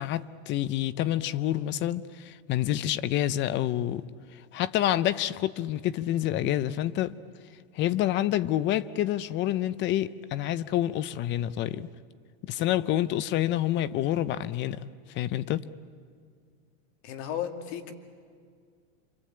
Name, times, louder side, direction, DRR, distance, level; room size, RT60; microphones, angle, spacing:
voice 1, 0.0-7.2 7.7-11.9 12.4-14.8 15.1-15.6, left 13 dB, 30° left, 0.6 m, -28 dB
voice 2, 17.0-17.9, left 9 dB, 50° left, 2.4 m, -34 dB
27.5 x 24.5 x 8.8 m
supercardioid pair, 150°, 40 cm